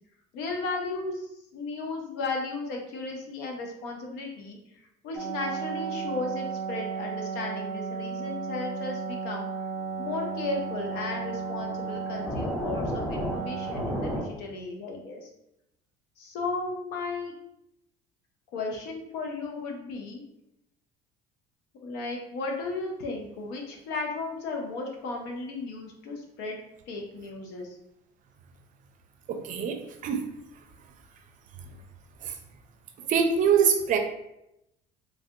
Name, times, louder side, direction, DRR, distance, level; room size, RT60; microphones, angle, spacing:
voice 1, 0.3-4.6 5.0-9.5 10.0-15.3 16.2-17.3 18.5-20.2 21.8-27.7, left 3 dB, 80° left, 1 dB, 0.7 m, -35 dB
sound 1, 5.2-14.2, right 4 dB, 5° left, 1.4 m, -33 dB
voice 2, 29.3-30.2 32.2-32.4 33.1-34.0, right 7 dB, 50° right, 5 dB, 0.5 m, -24 dB
3.3 x 2.6 x 2.5 m, 0.84 s
cardioid pair, 115°, 17 cm